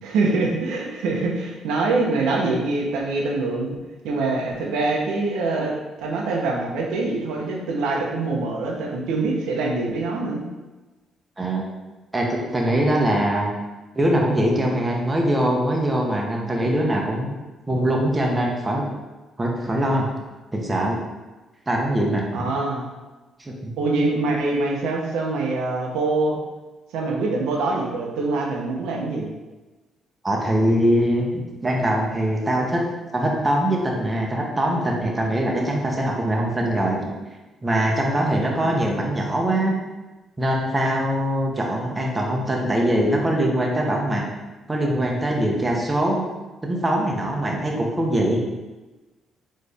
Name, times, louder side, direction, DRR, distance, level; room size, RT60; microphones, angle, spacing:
voice 1, 0.0-3.8 4.0-10.4 22.3-22.9 23.8-26.4 26.9-29.3, right 3 dB, 90° right, -1 dB, 0.7 m, -24 dB
voice 2, 12.1-13.5 13.9-17.4 17.7-18.8 19.4-20.1 20.5-21.0 21.7-22.2 23.4-23.7 30.2-32.8 33.1-37.1 37.6-39.7 40.4-44.2 44.7-46.2 46.6-48.4, right 1 dB, 20° right, -1 dB, 0.9 m, -22 dB
4.1 x 3.1 x 3.4 m, 1.2 s
cardioid pair, 90°, 0 cm